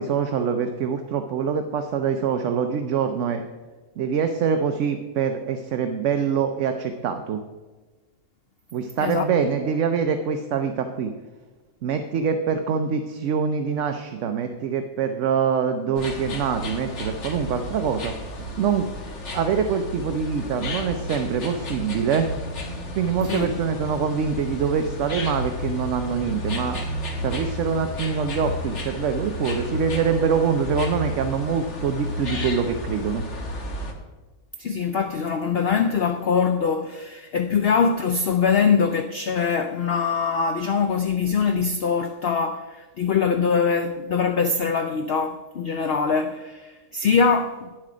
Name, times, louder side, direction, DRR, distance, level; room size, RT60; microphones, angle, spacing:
voice 1, 0.0-3.4 4.0-7.4 8.7-11.1 11.8-18.1 18.6-18.9 19.3-22.3 22.9-26.8 27.2-33.2, right 6 dB, 65° right, 0.9 m, -24 dB
sound 1, 15.9-33.9, left 1 dB, 50° left, 1.5 m, -32 dB
voice 2, 34.6-47.7, left 5 dB, 85° left, 0.5 m, -23 dB
9.7 x 7.5 x 5.0 m
omnidirectional pair, 1.6 m